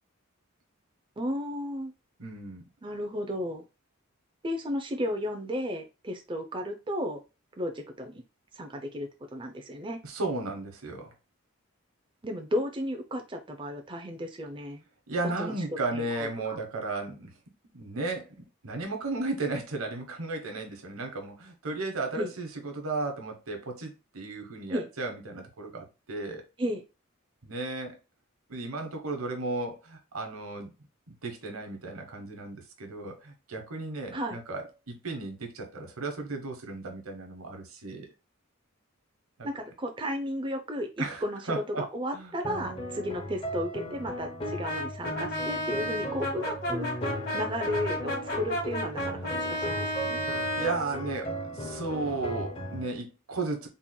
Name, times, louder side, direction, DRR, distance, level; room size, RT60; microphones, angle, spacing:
voice 1, 1.2-1.9 2.8-3.6 4.4-7.2 7.6-8.2 8.5-10.0 12.2-14.8 15.2-15.5 15.9-16.6 22.1-22.3 24.7-24.9 26.6-26.8 34.1-34.4 39.4-41.4 41.7-47.1 47.3-50.3, equal, 25° right, 0.5 m, -34 dB
voice 2, 2.2-2.6 10.0-11.1 15.1-17.3 17.7-18.4 18.6-26.4 27.4-28.0 28.5-30.7 31.1-38.1 39.4-39.5 41.0-41.9 42.1-42.3 50.6-53.7, right 3 dB, 90° right, 1.1 m, -34 dB
sound 1, 42.4-52.9, equal, 25° left, 0.7 m, -37 dB
Brass instrument, 44.6-50.8, equal, 50° left, 1.7 m, -32 dB
4.3 x 3.7 x 2.2 m
head